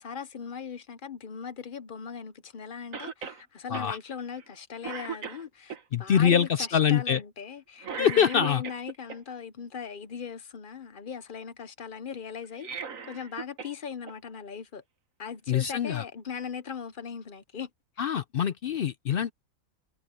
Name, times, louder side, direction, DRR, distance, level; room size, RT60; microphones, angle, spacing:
voice 1, 0.0-12.7 13.1-14.8 15.2-17.7, left 7 dB, 45° left, 0.7 m, -39 dB
Cough, 2.9-3.4 3.7-3.9 4.4-4.6 4.8-5.8 7.8-9.2 12.4-13.8 14.1-14.2 15.3-15.4, right 6 dB, 60° right, 1.9 m, -38 dB
voice 2, 5.9-7.2 8.0-8.6 15.5-16.0 18.0-19.3, left 8 dB, 75° left, 0.5 m, -24 dB
omnidirectional pair, 1.6 m